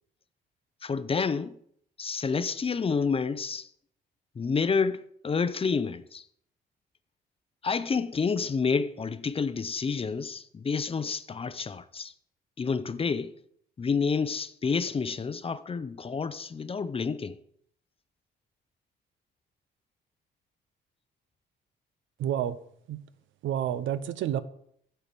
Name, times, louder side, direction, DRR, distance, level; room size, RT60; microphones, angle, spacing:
voice 1, 0.8-1.6 2.0-3.7 4.4-6.2 7.6-12.1 12.6-13.3 13.8-17.4, left 5 dB, 30° left, 0.6 m, -29 dB
voice 2, 22.2-22.6 22.9-23.0 23.4-24.4, right 10 dB, 75° right, 0.6 m, -29 dB
9.0 x 4.6 x 6.8 m
cardioid pair, 90°, 20 cm